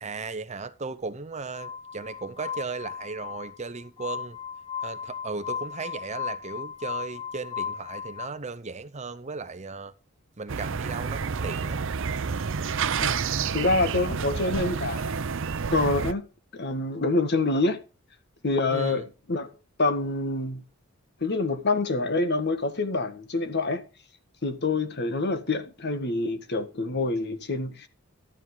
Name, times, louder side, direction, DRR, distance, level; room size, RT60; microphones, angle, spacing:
voice 1, 0.0-4.4 4.8-9.9 10.4-11.8 18.7-19.1, right 4 dB, 35° right, 0.8 m, -36 dB
Glass, 1.5-8.3, left 7 dB, 25° left, 2.3 m, -36 dB
sound 1, 10.5-16.1, right 5 dB, 65° right, 0.6 m, -29 dB
voice 2, 13.5-15.3 15.7-16.2 16.5-17.8 18.4-19.5 19.8-20.6 21.2-23.8 24.4-27.9, left 2 dB, 55° left, 1.6 m, -26 dB
12.5 x 9.8 x 3.9 m
head